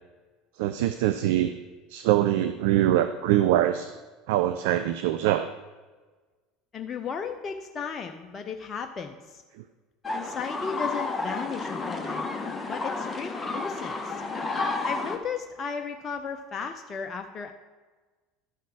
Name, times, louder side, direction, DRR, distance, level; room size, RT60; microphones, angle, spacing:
voice 1, 0.6-1.5 1.9-3.9 4.3-5.5 9.6-9.7, right 13 dB, 65° right, 10 dB, 0.4 m, -23 dB
voice 2, 6.7-9.4 10.1-12.3 12.7-14.2 14.8-17.5, left 6 dB, 35° left, 5 dB, 0.6 m, -35 dB
sound 1, 10.0-15.2, left 3 dB, 15° left, 1.3 m, -31 dB
12.0 x 5.7 x 4.8 m, 1.3 s
figure-of-eight pair, 70°, 0 cm